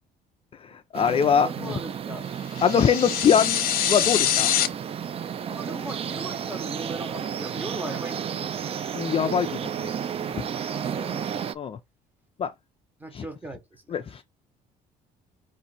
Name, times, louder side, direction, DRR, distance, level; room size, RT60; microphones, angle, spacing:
voice 1, 0.7-1.7 2.6-3.6 3.9-4.5 8.9-9.9 11.6-11.8 12.4-12.5 13.1-13.2 13.9-14.3, left 7 dB, 35° left, 0.4 m, -23 dB
sound 1, 0.9-11.5, right 8 dB, 35° right, 0.4 m, -32 dB
voice 2, 1.4-2.3 5.5-8.8 10.7-11.5 13.0-14.0, right 1 dB, 10° right, 1.1 m, -38 dB
sound 2, 2.6-4.7, left 10 dB, 60° left, 0.7 m, -24 dB
4.2 x 2.6 x 4.0 m
cardioid pair, 110°, 17 cm